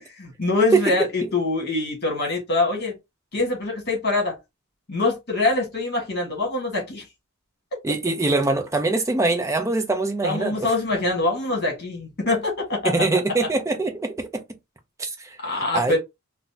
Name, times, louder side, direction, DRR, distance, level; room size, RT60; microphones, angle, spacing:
voice 1, 0.2-2.9 3.3-4.3 4.9-7.0 10.2-12.8 15.4-16.0, left 2 dB, 45° left, 1.5 m, -24 dB
voice 2, 7.8-10.7 12.8-14.4 15.0-15.4 15.7-16.0, right 3 dB, 15° right, 0.4 m, -23 dB
3.8 x 2.0 x 2.7 m
head